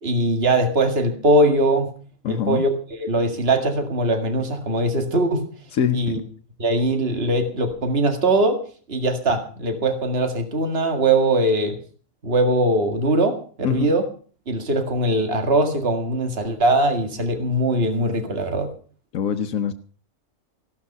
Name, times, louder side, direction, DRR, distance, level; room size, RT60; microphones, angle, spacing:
voice 1, 0.0-2.0 2.3-5.5 5.9-6.2 6.6-8.6 8.9-11.8 12.2-14.1 14.5-18.7, right 1 dB, 50° right, 2.2 m, -21 dB
voice 2, 2.2-2.6 5.7-6.2 13.6-13.9 19.1-19.7, left 9 dB, 85° left, 1.3 m, -23 dB
16.0 x 12.5 x 5.4 m
omnidirectional pair, 1.4 m